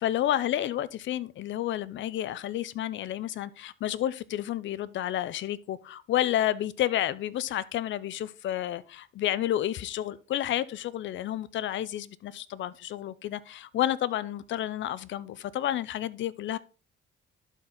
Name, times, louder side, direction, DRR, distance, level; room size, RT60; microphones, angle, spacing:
voice 1, 0.0-16.6, left 12 dB, 70° left, 0.6 m, -30 dB
11.5 x 4.5 x 3.9 m
cardioid pair, 90°, 20 cm